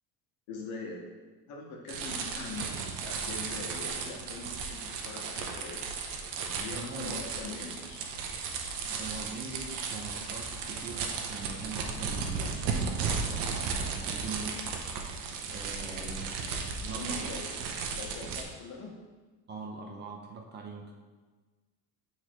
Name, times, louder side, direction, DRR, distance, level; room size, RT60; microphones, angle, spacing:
voice 1, 0.5-1.0 1.5-5.9 6.4-8.0 15.7-16.2 16.9-17.5 17.9-18.9, left 3 dB, 70° left, -1 dB, 1.5 m, -42 dB
sound 1, 1.9-18.4, right 5 dB, 85° right, 0.9 m, -35 dB
voice 2, 6.7-7.3 8.9-14.6 15.5-16.3 16.8-17.4 19.5-20.9, right 4 dB, 25° right, 1 dB, 0.5 m, -42 dB
sound 2, 8.6-17.0, equal, 45° left, 1.1 m, -50 dB
8.3 x 3.9 x 3.0 m, 1.3 s
cardioid pair, 150°, 39 cm